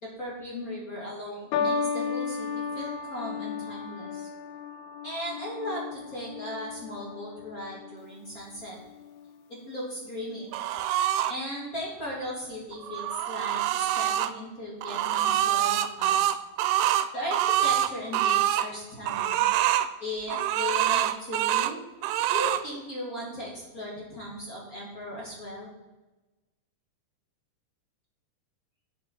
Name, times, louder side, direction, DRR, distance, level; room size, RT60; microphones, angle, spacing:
voice 1, 0.0-4.3 5.0-8.8 9.5-10.5 11.3-16.3 17.1-19.4 20.0-21.8 22.3-25.7, left 1 dB, 35° left, -4 dB, 1.5 m, -37 dB
sound 1, 1.5-8.0 8.9-9.3, left 5 dB, 80° left, 2.8 m, -34 dB
sound 2, 10.5-11.3 12.7-14.3 14.8-18.7 19.0-19.9 20.3-21.7 22.0-22.6, right 12 dB, 85° right, 2.5 m, -25 dB
8.2 x 6.8 x 4.2 m, 1.1 s
omnidirectional pair, 4.7 m